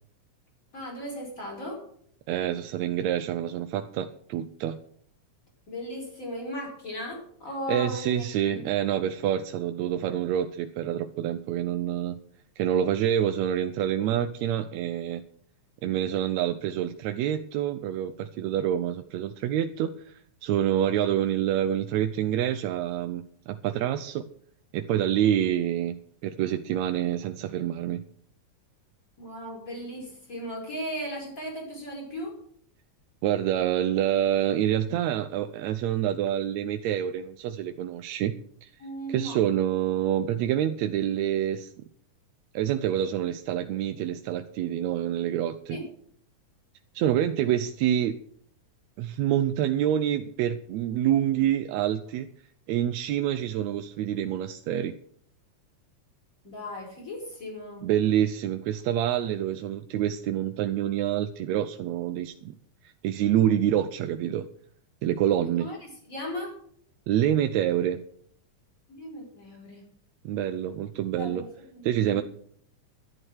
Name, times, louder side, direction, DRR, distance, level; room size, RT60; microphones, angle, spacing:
voice 1, 0.7-1.8 5.7-8.6 29.2-32.4 38.8-39.4 45.7-45.8 56.4-57.9 65.6-66.5 68.9-69.9 71.2-72.2, equal, 25° left, -1 dB, 5.6 m, -37 dB
voice 2, 2.3-4.8 7.7-12.2 12.6-15.2 15.8-24.3 24.7-28.0 33.2-38.7 39.1-41.7 42.5-45.8 47.0-48.2 49.0-52.3 52.7-55.0 57.8-62.5 62.8-64.5 65.0-65.7 67.1-68.0 70.3-71.4 71.8-72.2, right 11 dB, 75° right, 9 dB, 1.8 m, -27 dB
12.0 x 11.0 x 6.4 m, 0.62 s
omnidirectional pair, 3.6 m